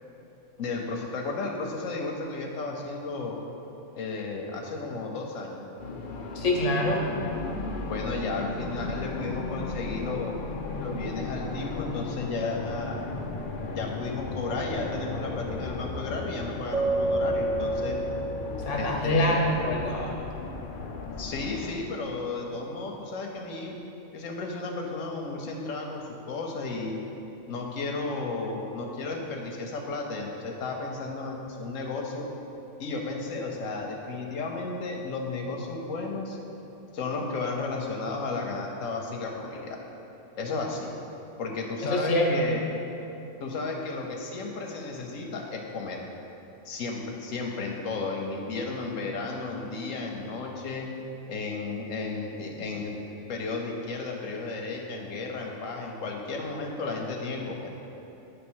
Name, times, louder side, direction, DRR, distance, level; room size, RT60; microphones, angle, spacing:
voice 1, 0.6-3.4 3.9-5.6 7.9-10.4 10.8-13.0 13.7-18.0 18.8-19.4 21.2-23.8 24.1-26.9 27.5-32.3 32.8-36.4 36.9-39.8 40.4-40.9 41.4-42.7 43.4-46.0 46.6-50.9 51.3-53.0 53.3-57.7, left 3 dB, 85° left, 0 dB, 1.1 m, -33 dB
sound 1, 5.8-21.8, left 3 dB, 55° left, 0.6 m, -35 dB
voice 2, 6.3-7.1 18.6-20.2 41.9-42.5, left 1 dB, 70° left, -1 dB, 1.3 m, -25 dB
Keyboard (musical), 16.7-19.2, right 2 dB, 50° right, 0.5 m, -29 dB
8.8 x 3.3 x 6.2 m, 2.9 s
omnidirectional pair, 1.3 m